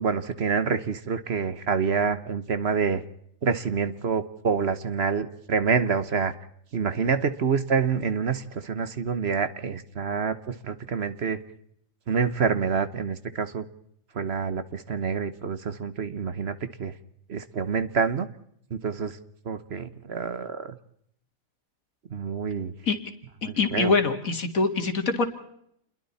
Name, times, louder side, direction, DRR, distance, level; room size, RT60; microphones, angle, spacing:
voice 1, 0.0-3.0 3.4-6.3 6.7-11.4 12.1-13.6 14.1-16.9 17.3-18.3 18.7-19.2 19.4-20.8 22.1-22.7 23.4-23.9, right 5 dB, 50° right, 12 dB, 1.3 m, -27 dB
voice 2, 23.4-25.3, left 4 dB, 80° left, 7 dB, 2.6 m, -24 dB
28.5 x 21.5 x 4.2 m, 0.71 s
omnidirectional pair, 1.4 m